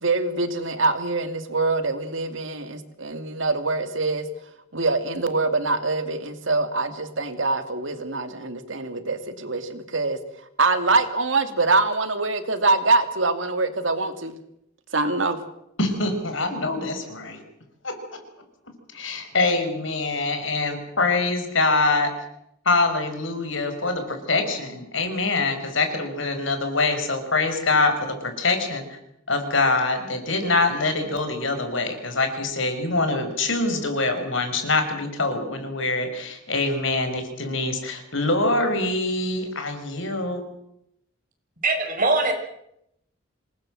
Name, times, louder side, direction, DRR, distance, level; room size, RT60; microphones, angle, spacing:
voice 1, 0.0-4.3 4.7-10.2 10.6-14.4 14.9-15.4, right 3 dB, 70° right, 9 dB, 2.5 m, -24 dB
voice 2, 15.8-17.4 17.8-18.0 18.9-22.1 22.7-28.9 29.3-40.4, left 3 dB, 70° left, 7 dB, 5.3 m, -24 dB
voice 3, 41.6-42.3, right 3 dB, 45° right, 4 dB, 5.9 m, -21 dB
27.0 x 19.5 x 7.7 m, 0.78 s
head